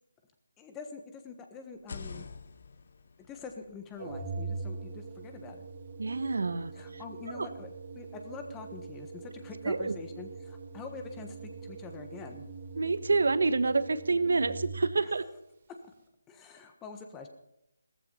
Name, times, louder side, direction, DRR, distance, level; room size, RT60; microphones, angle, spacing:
voice 1, 0.6-2.3 3.2-5.7 6.7-12.4 16.3-17.3, left 5 dB, 10° left, 6 dB, 1.3 m, -45 dB
sound 1, 1.7-5.6, left 4 dB, 50° left, 1.1 m, -48 dB
Organ, 4.0-15.0, right 4 dB, 40° right, 2.5 m, -43 dB
voice 2, 6.0-7.0 7.3-7.5 9.6-10.0 12.8-15.2, right 3 dB, 65° right, 13 dB, 1.3 m, -28 dB
16.5 x 14.5 x 5.6 m, 0.82 s
figure-of-eight pair, 155°, 0 cm